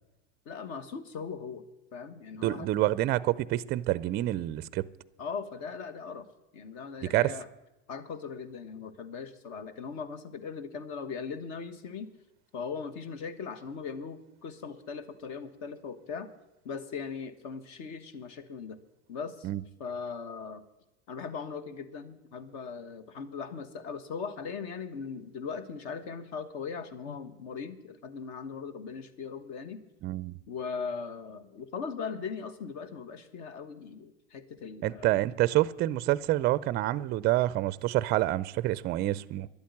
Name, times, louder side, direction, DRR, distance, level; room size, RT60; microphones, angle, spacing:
voice 1, 0.4-1.6 1.9-2.7 5.2-6.3 6.5-7.5 7.9-12.1 12.5-16.3 16.6-18.8 19.1-19.5 19.8-20.6 21.1-29.8 30.5-35.1, left 5 dB, 50° left, 1.5 m, -39 dB
voice 2, 2.4-4.8 7.1-7.3 19.4-19.6 30.0-30.4 34.8-39.5, right 15 dB, 30° right, 0.4 m, -27 dB
11.5 x 8.4 x 9.6 m
supercardioid pair, 125°, 36 cm